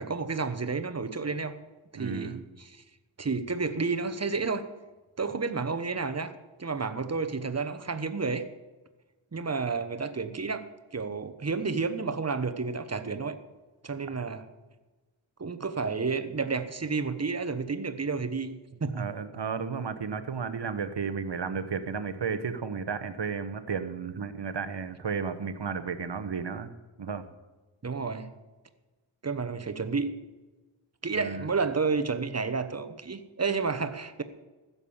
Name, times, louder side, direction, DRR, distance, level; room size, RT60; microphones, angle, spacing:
voice 1, 0.0-1.5 1.9-2.8 3.2-4.7 5.2-6.3 6.6-8.4 9.3-10.6 10.9-13.4 13.8-14.4 15.4-18.5 18.8-19.1 27.8-28.3 29.2-30.1 31.0-34.2, right 4 dB, 30° right, 10 dB, 1.0 m, -31 dB
voice 2, 1.9-2.4 18.9-26.7 27.0-27.2 31.1-31.5, right 6 dB, 60° right, 11 dB, 1.1 m, -33 dB
15.5 x 7.0 x 7.2 m, 1.2 s
wide cardioid pair, 100°, 49 cm